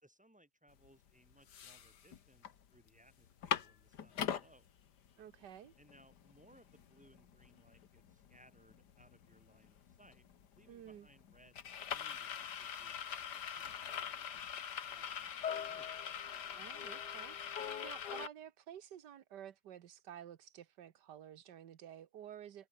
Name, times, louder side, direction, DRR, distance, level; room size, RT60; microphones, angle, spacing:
voice 1, 0.0-4.7 5.8-10.2 10.5-14.4 14.9-16.0, right 1 dB, 5° right, 4.1 m, -66 dB
sound 1, 0.9-1.0 1.3-2.5 2.9-3.0 3.2-4.5 5.1-5.2 5.4-18.3, left 8 dB, 70° left, 1.9 m, -42 dB
voice 2, 5.2-5.7 10.7-11.1 16.5-22.7, right 10 dB, 70° right, 1.7 m, -52 dB
omnidirectional pair, 1.9 m